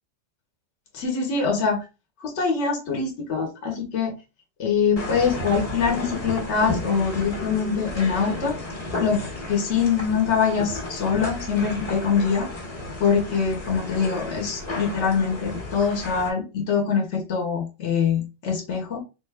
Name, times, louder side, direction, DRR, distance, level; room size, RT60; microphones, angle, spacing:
voice 1, 0.9-1.9 2.2-4.1 4.6-8.6 9.0-12.5 13.0-19.0, left 6 dB, 70° left, 1 dB, 1.1 m, -24 dB
sound 1, 5.0-16.3, left 2 dB, 30° left, 1.0 m, -33 dB
3.5 x 2.3 x 3.3 m, 0.29 s
omnidirectional pair, 1.3 m